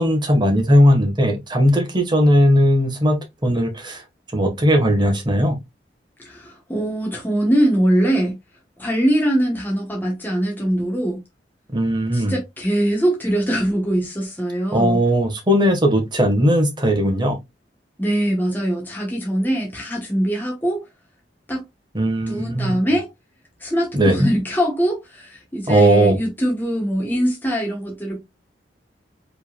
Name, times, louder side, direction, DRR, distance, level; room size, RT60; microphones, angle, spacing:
voice 1, 0.0-3.2 3.4-4.0 4.3-5.6 11.7-12.4 14.7-17.4 21.9-22.8 23.9-24.3 25.7-26.2, equal, 25° right, 1.5 m, -17 dB
voice 2, 6.2-8.4 8.8-11.2 12.1-15.0 18.0-20.8 21.5-21.6 22.3-23.1 23.6-28.2, right 1 dB, 10° left, 1.3 m, -22 dB
5.1 x 3.9 x 2.4 m
head